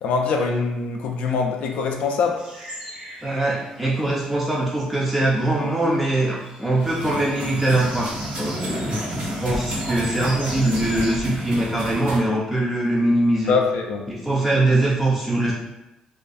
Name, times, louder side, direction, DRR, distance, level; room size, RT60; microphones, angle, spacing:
voice 1, 0.0-2.4 13.5-14.1, left 4 dB, 80° left, 2 dB, 0.3 m, -23 dB
sound 1, 2.4-11.2, equal, 80° right, 1.2 m, -39 dB
voice 2, 3.2-13.5 14.1-15.5, right 1 dB, 10° right, -5 dB, 0.4 m, -22 dB
sound 2, 6.8-12.2, equal, 60° right, 0.8 m, -30 dB
2.4 x 2.3 x 2.5 m, 0.93 s
cardioid pair, 105°, 2 cm